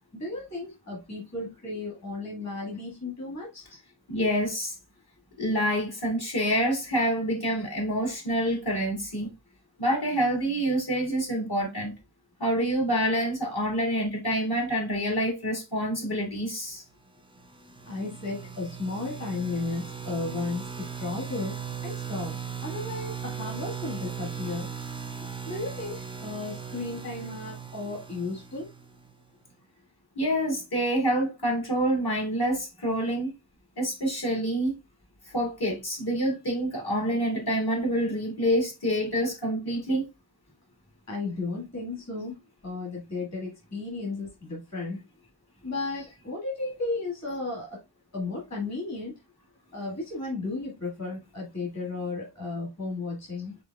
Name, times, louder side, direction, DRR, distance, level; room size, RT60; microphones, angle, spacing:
voice 1, 0.1-3.7 17.9-21.6 21.8-22.3 22.6-24.7 25.4-28.7 41.1-42.3 42.6-45.0 45.6-47.8 48.1-49.2 49.7-53.6, left 3 dB, 35° left, 1.9 m, -34 dB
voice 2, 4.1-4.8 5.4-9.3 9.8-11.9 12.4-16.8 30.2-33.3 33.8-34.7 35.3-40.0, equal, 55° left, 2.2 m, -27 dB
sound 1, 17.4-29.1, right 7 dB, 10° right, 0.5 m, -38 dB
5.1 x 4.0 x 2.3 m
wide cardioid pair, 70°, 46 cm